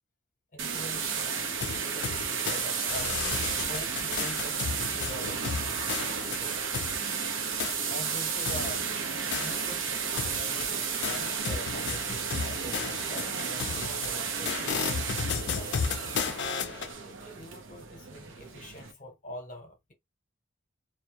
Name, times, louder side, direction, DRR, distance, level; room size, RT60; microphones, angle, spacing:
voice 1, 0.5-1.5 1.8-3.2 3.6-5.9 6.3-6.7 7.8-15.1 15.5-16.2 17.0-19.9, left 1 dB, 40° left, 0.8 m, -45 dB
sound 1, 0.6-18.9, right 6 dB, 75° right, 0.6 m, -33 dB
sound 2, 1.6-2.6 2.9-7.0 7.6-7.8 8.5-9.9 10.2-16.9, left 6 dB, 60° left, 0.4 m, -34 dB
2.2 x 2.1 x 2.8 m
head